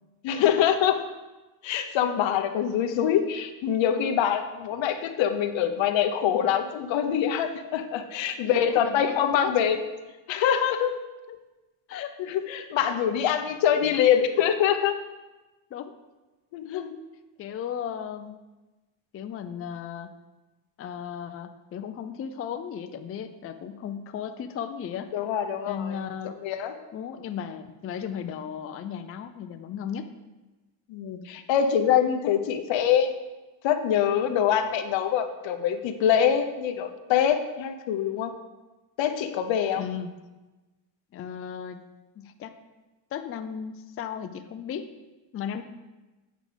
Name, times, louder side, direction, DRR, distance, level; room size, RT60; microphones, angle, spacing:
voice 1, 0.2-1.0 1.6-9.8 10.3-10.9 11.9-14.9 16.5-16.9 25.1-26.0 26.2-26.7 30.9-33.1 33.6-38.3 39.0-39.8, left 9 dB, 85° left, 8 dB, 0.8 m, -24 dB
voice 2, 8.5-9.5 11.3-11.4 11.9-12.2 15.7-15.9 16.7-16.9 17.4-18.4 19.1-20.1 20.8-25.1 25.7-26.4 26.9-30.1 39.8-40.1 41.1-41.8 42.2-42.5 43.1-44.9 45.3-45.6, left 8 dB, 35° left, 8 dB, 0.4 m, -35 dB
8.4 x 5.0 x 5.0 m, 1.1 s
cardioid pair, 165°, 44 cm